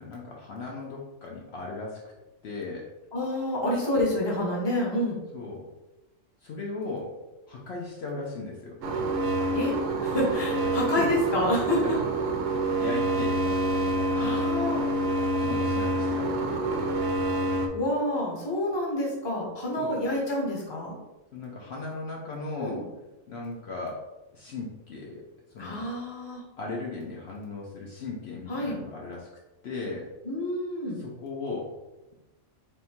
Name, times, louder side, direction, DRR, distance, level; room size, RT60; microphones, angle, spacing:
voice 1, 0.0-2.0 2.4-2.9 5.3-5.6 6.4-7.1 7.5-8.8 10.6-11.1 11.8-12.1 12.8-13.5 13.9-14.4 15.4-16.4 19.8-20.0 21.3-22.8 23.3-24.0 24.3-25.2 25.5-25.8 26.6-29.3 29.6-30.1 31.0-31.7, left 3 dB, 60° left, -2 dB, 0.8 m, -37 dB
voice 2, 3.1-5.2 9.5-9.7 10.0-12.0 12.8-12.9 14.1-14.8 17.7-21.0 22.6-22.8 25.6-26.4 28.5-28.8 30.2-31.0, left 1 dB, 25° left, -2 dB, 0.8 m, -28 dB
sound 1, 8.8-17.7, right 1 dB, 80° right, 1.0 m, -27 dB
3.5 x 2.6 x 4.2 m, 1.0 s
omnidirectional pair, 1.3 m